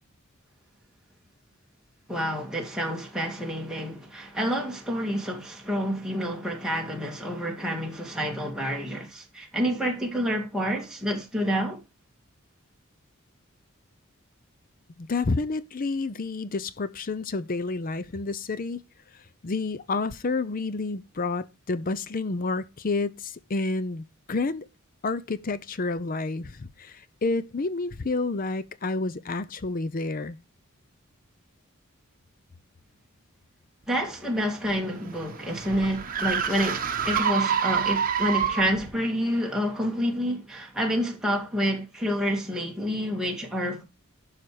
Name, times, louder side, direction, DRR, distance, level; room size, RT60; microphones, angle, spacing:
voice 1, 2.1-11.8 33.9-43.8, equal, 5° right, 2.3 m, -28 dB
voice 2, 15.0-18.8 19.4-24.7 25.0-30.4, left 3 dB, 40° left, 0.5 m, -29 dB
sound 1, 34.4-38.9, right 7 dB, 40° right, 1.2 m, -27 dB
11.5 x 5.7 x 4.8 m
head